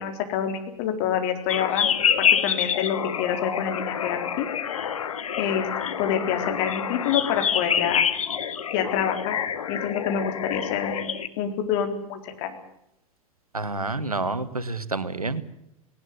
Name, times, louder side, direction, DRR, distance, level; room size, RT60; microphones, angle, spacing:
voice 1, 0.0-1.9 2.2-4.5 5.4-5.7 6.0-8.0 8.7-9.4 9.7-12.6, left 8 dB, 50° left, 6 dB, 4.0 m, -27 dB
sound 1, 1.5-11.3, left 8 dB, 70° left, 1.6 m, -27 dB
voice 2, 13.5-15.4, right 3 dB, 90° right, 14 dB, 1.4 m, -28 dB
19.0 x 18.5 x 9.6 m, 0.80 s
figure-of-eight pair, 90°, 18 cm